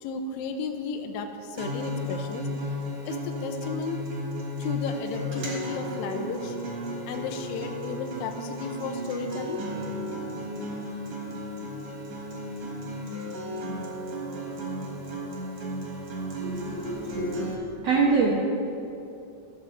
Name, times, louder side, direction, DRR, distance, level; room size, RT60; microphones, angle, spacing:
voice 1, 0.0-2.5 3.1-4.1 4.6-6.6 7.1-9.6, left 5 dB, 80° left, 6 dB, 2.2 m, -34 dB
Acoustic guitar, 1.5-17.5, equal, 55° right, 1.9 m, -34 dB
voice 2, 16.4-18.3, right 4 dB, 80° right, -4 dB, 1.4 m, -26 dB
14.0 x 6.7 x 3.8 m, 2.7 s
omnidirectional pair, 4.4 m